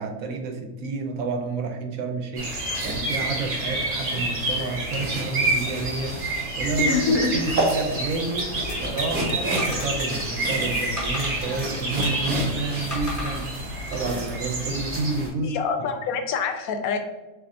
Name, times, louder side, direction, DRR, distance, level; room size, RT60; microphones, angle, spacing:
voice 1, 0.0-15.6, right 3 dB, 75° right, 5 dB, 1.0 m, -30 dB
sound 1, 2.4-15.3, right 1 dB, 40° right, 1.0 m, -27 dB
voice 2, 6.8-7.6 15.4-17.0, left 4 dB, 80° left, 6 dB, 1.1 m, -25 dB
sound 2, 8.4-9.4 9.8-10.4 10.6-10.7 11.2-12.3, left 4 dB, 65° left, 0.5 m, -39 dB
sound 3, 9.6-10.4 10.9-12.4 12.9-13.5 13.9-14.3, left 1 dB, 15° left, 1.2 m, -36 dB
7.0 x 2.7 x 2.5 m, 1.1 s
omnidirectional pair, 1.5 m